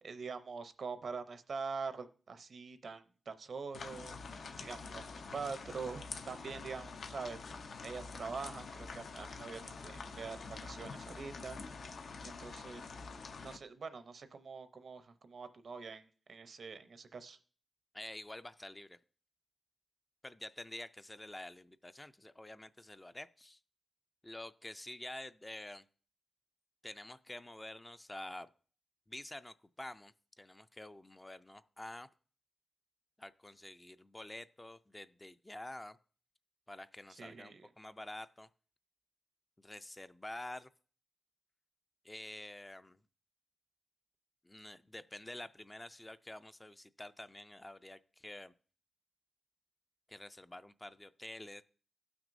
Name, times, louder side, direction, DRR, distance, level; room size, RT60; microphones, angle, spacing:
voice 1, 0.0-4.2 4.6-7.4 7.8-11.6 12.2-12.9 13.4-17.4 37.2-37.7, right 5 dB, 70° right, 11 dB, 0.6 m, -44 dB
sound 1, 3.7-13.6, left 4 dB, 80° left, 0.6 m, -46 dB
voice 2, 17.9-19.0 20.2-23.6 24.2-25.9 26.8-28.5 29.1-32.1 33.2-36.0 36.7-38.5 39.6-40.7 42.0-43.0 44.4-48.5 50.1-51.6, left 1 dB, 15° left, 12 dB, 0.3 m, -48 dB
16.5 x 6.0 x 2.6 m, 0.42 s
wide cardioid pair, 105°, 0 cm